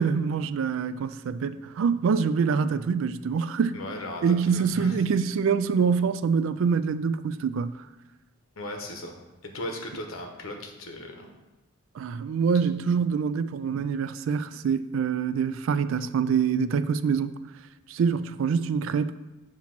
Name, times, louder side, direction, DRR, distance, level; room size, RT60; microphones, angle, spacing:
voice 1, 0.0-3.8 4.2-7.7 12.0-17.3 17.9-19.2, right 6 dB, 70° right, 0.3 m, -25 dB
voice 2, 3.7-5.0 8.6-9.1 9.4-11.3, left 1 dB, 80° left, 1.0 m, -37 dB
7.4 x 2.9 x 5.9 m
head